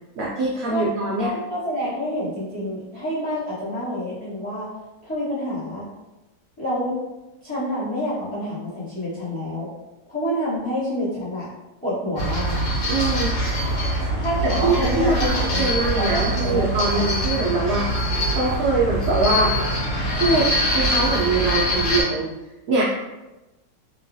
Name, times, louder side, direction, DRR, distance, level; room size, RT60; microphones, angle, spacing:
voice 1, 0.2-1.3 12.9-13.4 14.4-19.5 20.2-22.3 22.7-22.8, right 2 dB, 70° right, -5 dB, 0.8 m, -23 dB
voice 2, 1.2-4.7 5.0-5.9 6.6-7.0 7.4-9.7 10.1-11.5 11.8-12.6 14.2-16.6 16.9-17.1, equal, 5° left, -10 dB, 1.0 m, -28 dB
sound 1, 12.2-22.0, equal, 70° left, 1.4 m, -23 dB
3.0 x 2.3 x 2.6 m, 1.0 s
omnidirectional pair, 1.9 m